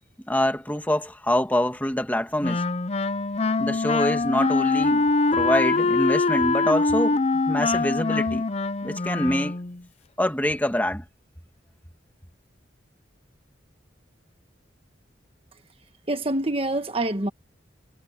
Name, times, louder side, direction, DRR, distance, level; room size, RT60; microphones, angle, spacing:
voice 1, 0.3-2.6 3.6-7.2 7.5-8.5 8.8-9.6 10.2-11.0, left 1 dB, 10° left, 2.0 m, -25 dB
Wind instrument woodwind instrument, 2.4-9.8, left 3 dB, 35° left, 0.6 m, -23 dB
voice 2, 16.1-17.3, right 1 dB, 30° right, 1.5 m, -26 dB
head